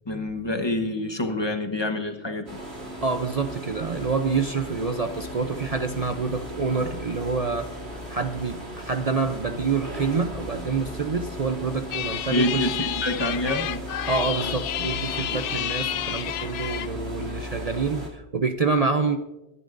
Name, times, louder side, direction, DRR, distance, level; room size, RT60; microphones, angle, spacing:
voice 1, 0.1-2.6 12.3-13.9, left 1 dB, 25° left, 6 dB, 1.0 m, -27 dB
sound 1, 2.5-18.1, equal, 65° right, 2.9 m, -36 dB
voice 2, 3.0-7.7 8.1-12.7 14.1-19.2, right 4 dB, 40° right, 7 dB, 0.6 m, -27 dB
sound 2, 11.9-16.9, left 12 dB, 90° left, 0.9 m, -30 dB
23.5 x 11.0 x 2.6 m, 1.0 s
omnidirectional pair, 1.2 m